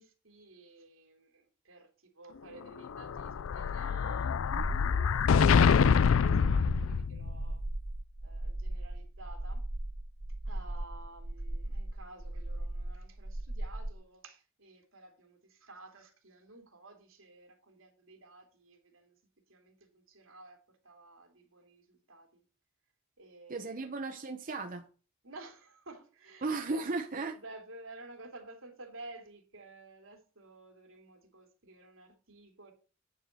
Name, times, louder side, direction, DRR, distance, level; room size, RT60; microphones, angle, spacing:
voice 1, 0.0-7.6 8.2-9.6 10.4-19.2 19.5-22.4 23.2-23.9 25.2-26.5 26.8-26.9 27.3-32.7, right 2 dB, 90° right, 3.1 m, -53 dB
Explosion, 2.8-7.5, left 6 dB, 85° left, 0.4 m, -26 dB
sound 1, 4.5-13.9, right 1 dB, 20° right, 0.6 m, -37 dB
voice 2, 23.5-24.9 26.4-27.4, right 3 dB, 45° right, 0.9 m, -35 dB
9.8 x 4.6 x 7.6 m
head